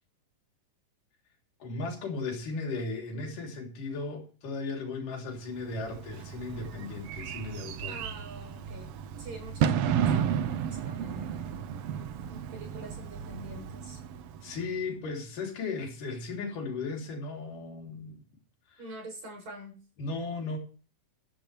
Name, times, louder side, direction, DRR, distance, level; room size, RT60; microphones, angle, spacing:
voice 1, 1.6-8.0 14.4-18.2 18.7-18.8 20.0-20.6, left 3 dB, 80° left, 4.8 m, -36 dB
Bird / Fireworks, 5.6-14.8, right 8 dB, 80° right, 1.3 m, -33 dB
voice 2, 7.9-8.9 9.2-11.3 12.3-14.0 18.8-19.8, right 1 dB, 60° right, 8.2 m, -45 dB
15.0 x 13.0 x 3.4 m
omnidirectional pair, 3.7 m